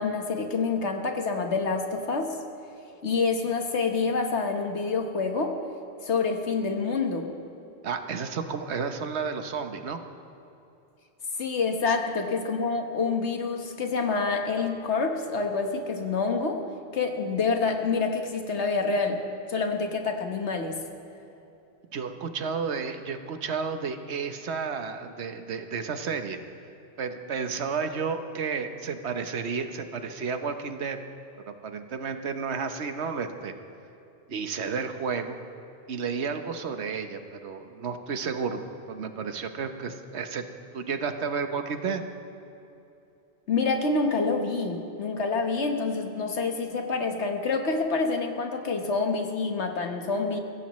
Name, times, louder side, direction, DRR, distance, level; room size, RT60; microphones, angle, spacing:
voice 1, 0.0-2.4 3.0-5.6 6.0-7.3 11.4-16.6 16.9-20.8 43.5-50.4, left 4 dB, 80° left, 4 dB, 1.6 m, -27 dB
voice 2, 7.8-10.0 21.9-26.4 27.0-31.0 31.5-33.5 34.3-35.4 35.9-40.5 40.7-42.0, right 5 dB, 75° right, 7 dB, 1.2 m, -32 dB
22.5 x 16.5 x 3.1 m, 2.9 s
omnidirectional pair, 1.1 m